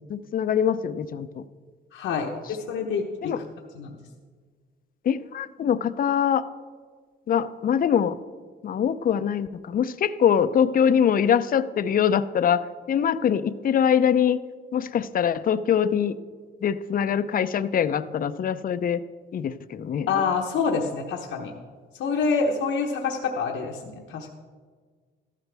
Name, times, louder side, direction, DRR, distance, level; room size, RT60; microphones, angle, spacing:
voice 1, 0.1-1.4 3.2-3.4 5.0-6.5 7.3-8.1 8.6-14.4 14.7-16.1 16.6-19.0 19.3-20.1, left 8 dB, 45° left, 13 dB, 0.5 m, -23 dB
voice 2, 1.9-2.3 2.7-3.4 3.8-3.9 20.1-21.5 22.0-24.3, left 5 dB, 80° left, 0 dB, 1.0 m, -26 dB
14.0 x 12.0 x 3.4 m, 1.6 s
cardioid pair, 90°, 20 cm